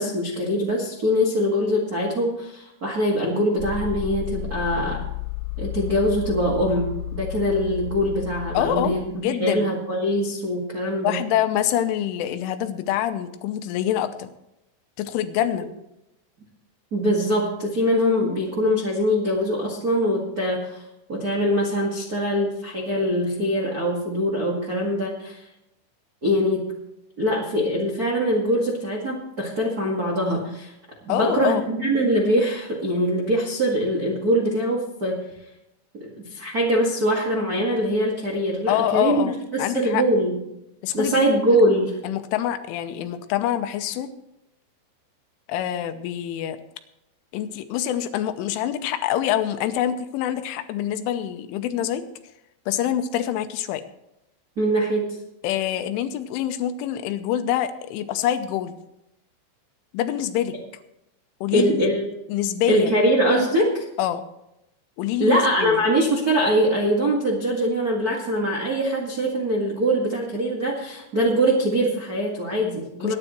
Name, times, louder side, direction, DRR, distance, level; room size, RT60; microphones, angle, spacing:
voice 1, 0.0-5.0 5.6-11.2 16.9-20.8 21.1-25.5 26.2-26.7 27.2-30.7 31.0-35.2 35.9-40.4 40.9-42.0 54.6-55.2 61.5-62.1 62.7-63.8 65.2-73.1, equal, 75° right, -3 dB, 0.8 m, -23 dB
sound 1, 3.6-9.1, left 13 dB, 60° left, 1.6 m, -32 dB
voice 2, 8.5-9.7 11.0-14.3 15.0-15.7 31.1-31.6 38.7-40.0 40.8-41.3 42.0-44.1 45.5-46.6 47.3-52.1 52.7-53.8 55.4-58.8 59.9-60.6 61.4-61.9 62.3-62.9 64.0-64.2 65.0-65.8 73.0-73.2, left 11 dB, 85° left, 9 dB, 3.3 m, -25 dB
22.0 x 9.9 x 3.1 m, 0.85 s
omnidirectional pair, 5.6 m